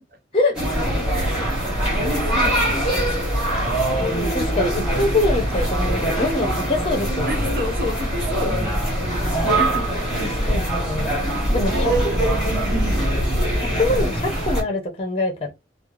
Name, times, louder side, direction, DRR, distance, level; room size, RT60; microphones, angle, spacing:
sound 1, 0.5-14.6, right 1 dB, 5° right, 1.4 m, -22 dB
voice 1, 0.7-4.2 6.2-6.5 7.3-10.3 11.5-13.1, left 1 dB, 55° right, 0.8 m, -33 dB
voice 2, 4.0-7.4 10.2-11.9 13.5-15.5, left 2 dB, 30° left, 0.7 m, -24 dB
3.1 x 2.0 x 2.4 m
head